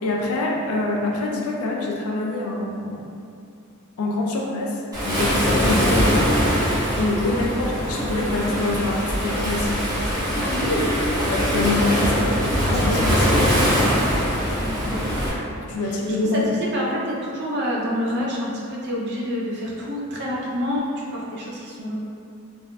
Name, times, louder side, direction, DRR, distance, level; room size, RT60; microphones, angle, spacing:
voice 1, 0.0-3.1 4.0-6.2 7.0-9.8 11.2-13.8 15.6-16.5, left 2 dB, 80° left, -2 dB, 0.4 m, -25 dB
Waves surf, 4.9-15.3, equal, 20° right, 0.9 m, -22 dB
voice 2, 7.3-7.6 10.4-10.9 14.5-15.2 15.8-22.0, equal, 55° right, -4 dB, 0.6 m, -28 dB
3.3 x 2.5 x 2.2 m, 2.5 s
head